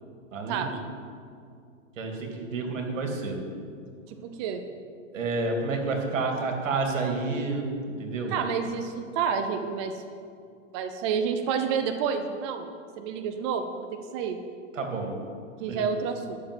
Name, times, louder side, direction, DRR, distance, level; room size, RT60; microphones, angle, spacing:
voice 1, 0.3-0.8 2.0-3.4 5.1-7.7 8.0-8.4 14.7-15.2 15.6-15.8, right 3 dB, 75° right, 3 dB, 2.6 m, -29 dB
voice 2, 4.1-4.6 8.3-9.9 10.7-12.7 13.0-13.9 14.1-14.4 15.6-16.4, right 6 dB, 25° right, 6 dB, 0.4 m, -29 dB
11.5 x 6.7 x 7.8 m, 2.3 s
hypercardioid pair, 150°, 38 cm